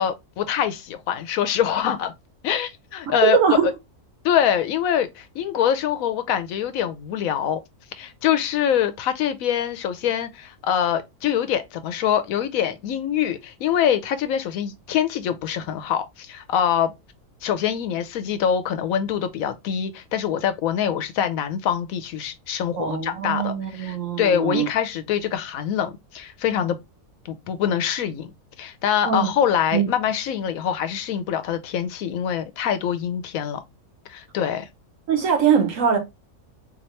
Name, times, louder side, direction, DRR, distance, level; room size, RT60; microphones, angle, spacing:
voice 1, 0.0-2.1 2.4-3.7 4.2-7.6 8.0-16.9 17.4-26.8 27.2-28.3 28.6-33.6 34.1-34.7, left 9 dB, 75° left, 0.9 m, -24 dB
voice 2, 3.1-3.7 22.8-24.7 29.0-29.3 29.7-29.9 35.1-36.0, right 7 dB, 65° right, 1.3 m, -21 dB
3.9 x 2.9 x 3.1 m
omnidirectional pair, 1.6 m